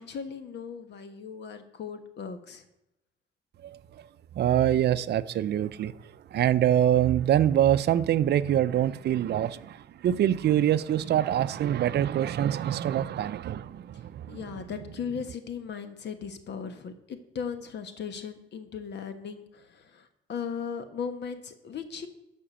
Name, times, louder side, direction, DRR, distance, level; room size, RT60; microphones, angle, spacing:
voice 1, 0.0-2.6 14.3-22.1, left 6 dB, 60° left, 1.3 m, -37 dB
voice 2, 3.6-4.1 4.3-15.2, right 11 dB, 60° right, 0.5 m, -25 dB
12.0 x 5.1 x 7.4 m
cardioid pair, 135°, 20 cm